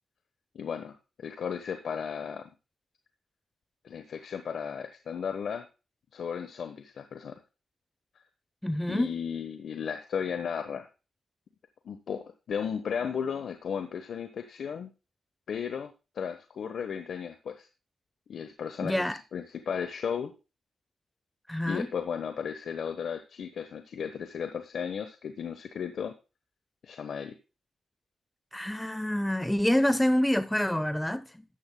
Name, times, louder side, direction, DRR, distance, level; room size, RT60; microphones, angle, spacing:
voice 1, 0.5-2.4 3.8-5.7 6.1-7.4 8.9-10.9 11.8-14.9 15.5-17.7 18.3-20.3 21.7-26.1 26.8-27.3, left 7 dB, 70° left, 1.1 m, -35 dB
voice 2, 8.6-9.1 18.8-19.2 21.5-21.9 28.5-31.4, left 1 dB, 10° left, 0.7 m, -27 dB
13.5 x 10.5 x 2.2 m
supercardioid pair, 55°, 0 cm